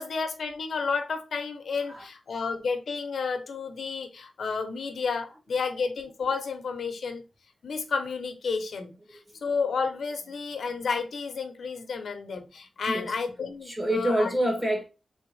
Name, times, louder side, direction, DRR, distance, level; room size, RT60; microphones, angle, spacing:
voice 1, 0.0-7.2 7.6-14.3, left 5 dB, 85° left, 0.7 m, -31 dB
voice 2, 12.8-13.1 13.6-14.8, right 1 dB, 20° right, 1.8 m, -27 dB
3.5 x 3.3 x 3.1 m
wide cardioid pair, 95°, 0 cm